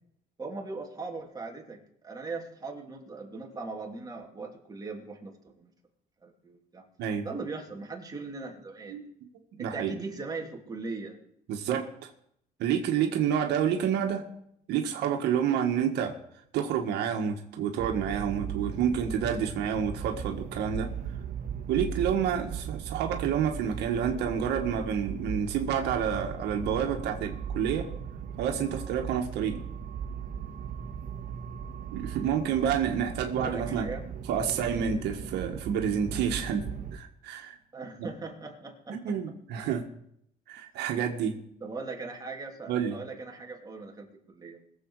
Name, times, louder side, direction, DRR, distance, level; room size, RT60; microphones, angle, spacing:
voice 1, 0.4-5.7 6.2-6.8 7.2-9.0 9.6-11.2 33.4-34.0 37.7-39.1 41.6-44.6, right 3 dB, 20° right, 0 dB, 3.0 m, -39 dB
voice 2, 9.6-9.9 11.5-12.1 12.6-14.2 14.7-16.1 16.5-20.9 21.7-27.9 28.4-29.6 31.9-33.9 34.3-37.6 38.9-39.8 40.5-41.4 42.7-43.0, right 8 dB, 80° right, 3 dB, 1.7 m, -29 dB
sound 1, 17.8-37.0, right 7 dB, 55° right, 1.7 m, -38 dB
21.5 x 7.8 x 4.8 m, 0.71 s
cardioid pair, 110°, 17 cm